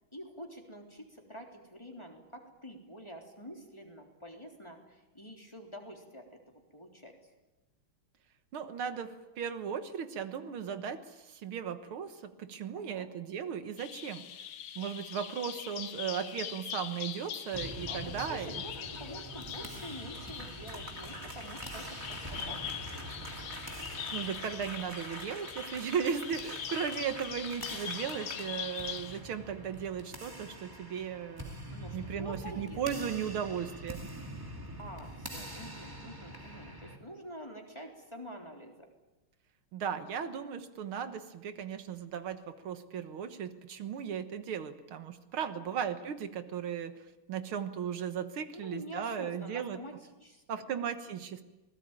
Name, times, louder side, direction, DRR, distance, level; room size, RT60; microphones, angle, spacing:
voice 1, 0.1-7.1 12.8-13.1 17.9-23.0 31.7-33.2 34.8-38.9 45.4-45.8 48.5-49.9 50.2-50.4, equal, 10° left, 1 dB, 3.5 m, -47 dB
voice 2, 8.5-14.2 14.8-18.6 24.1-31.5 31.9-34.0 39.7-47.0 47.3-49.8 50.5-51.4, right 7 dB, 75° right, 10 dB, 2.2 m, -36 dB
Bird vocalization bird call bird song, 13.8-29.2, left 9 dB, 70° left, 1.9 m, -42 dB
sound 1, 17.5-37.0, right 1 dB, 10° right, 2.5 m, -45 dB
sound 2, 18.0-29.0, right 2 dB, 30° right, 2.7 m, -48 dB
27.0 x 19.5 x 9.1 m, 1.0 s
omnidirectional pair, 2.3 m